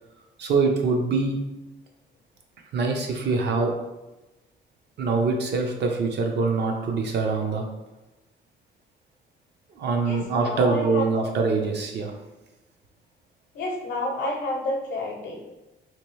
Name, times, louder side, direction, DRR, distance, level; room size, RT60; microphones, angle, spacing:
voice 1, 0.4-1.4 2.7-3.7 5.0-7.7 9.7-12.1, right 4 dB, 60° right, 2 dB, 0.7 m, -24 dB
voice 2, 10.0-11.0 11.6-11.7 13.5-15.5, left 2 dB, 60° left, -2 dB, 0.7 m, -30 dB
2.9 x 2.6 x 3.1 m, 1.0 s
cardioid pair, 90°, 20 cm